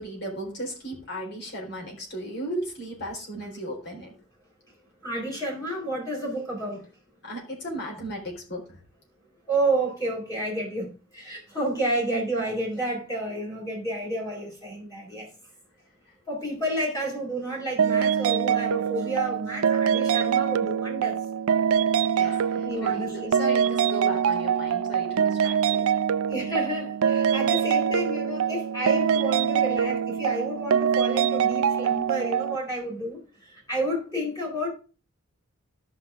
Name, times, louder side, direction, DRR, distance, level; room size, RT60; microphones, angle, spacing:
voice 1, 0.0-4.1 7.2-8.8 22.2-25.9, equal, 55° left, 3.9 m, -36 dB
voice 2, 5.0-6.8 9.5-10.9 11.1-15.3 16.3-21.2 22.5-23.3 26.3-33.2 33.7-34.7, right 1 dB, 15° left, 4.3 m, -30 dB
sound 1, 17.8-32.6, right 8 dB, 85° right, 0.4 m, -24 dB
13.0 x 5.9 x 3.5 m
head